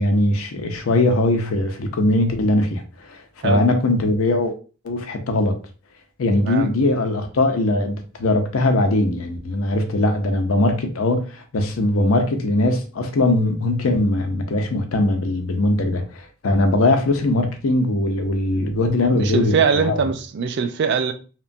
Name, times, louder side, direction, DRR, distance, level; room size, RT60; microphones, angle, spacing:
voice 1, 0.0-4.5 4.8-5.6 6.2-19.6 19.8-20.0, left 2 dB, 85° left, 0.5 m, -20 dB
voice 2, 19.1-21.1, right 6 dB, 55° right, 0.3 m, -22 dB
2.9 x 2.2 x 2.5 m
head